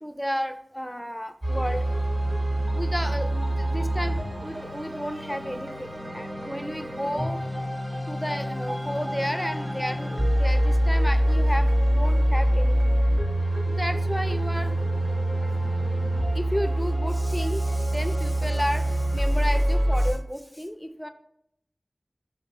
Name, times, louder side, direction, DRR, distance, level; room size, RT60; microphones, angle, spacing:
voice 1, 0.0-1.8 2.7-7.4 8.1-12.9 13.7-15.0 15.3-15.4 16.3-21.1, equal, 5° left, 8 dB, 0.4 m, -32 dB
sound 1, 1.4-20.1, right 1 dB, 40° right, 1.6 m, -25 dB
3.4 x 2.9 x 4.5 m, 0.71 s
wide cardioid pair, 50°, 0 cm